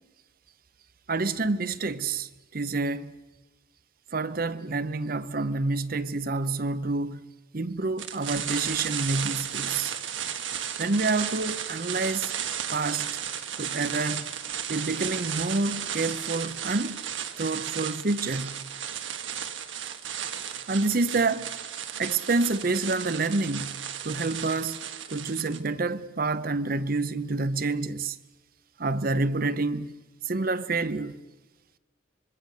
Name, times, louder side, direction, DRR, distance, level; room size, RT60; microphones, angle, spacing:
voice 1, 1.1-3.2 4.1-9.9 10.8-12.3 12.7-13.2 13.6-14.4 14.7-17.0 17.4-18.7 20.7-21.5 22.0-24.8 25.1-28.2 28.8-30.0 30.2-31.2, right 3 dB, 45° right, 0.8 m, -28 dB
sound 1, 8.0-25.7, right 9 dB, 75° right, 1.5 m, -34 dB
25.5 x 23.0 x 6.6 m
head